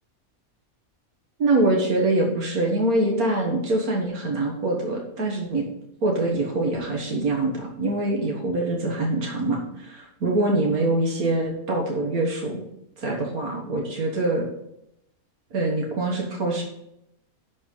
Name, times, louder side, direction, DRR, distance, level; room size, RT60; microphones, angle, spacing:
voice 1, 1.4-5.7 6.0-12.6 13.0-14.5 15.5-16.6, right 2 dB, 85° right, 0 dB, 2.0 m, -24 dB
11.5 x 4.3 x 5.5 m, 0.80 s
omnidirectional pair, 1.5 m